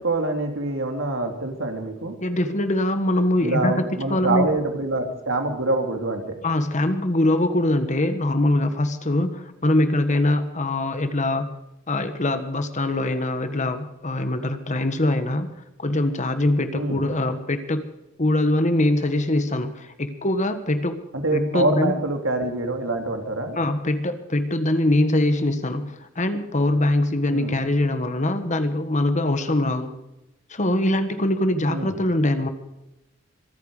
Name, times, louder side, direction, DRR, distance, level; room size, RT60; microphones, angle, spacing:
voice 1, 0.0-2.1 3.4-6.4 16.7-17.1 21.1-23.6 27.3-27.6 31.7-32.0, right 2 dB, 75° right, 4 dB, 3.0 m, -25 dB
voice 2, 2.2-4.5 6.4-11.5 11.9-15.5 15.8-17.9 18.2-21.0 21.3-21.9 23.6-29.9 30.5-32.5, left 1 dB, 35° left, 9 dB, 1.4 m, -23 dB
25.5 x 9.3 x 5.0 m, 0.92 s
head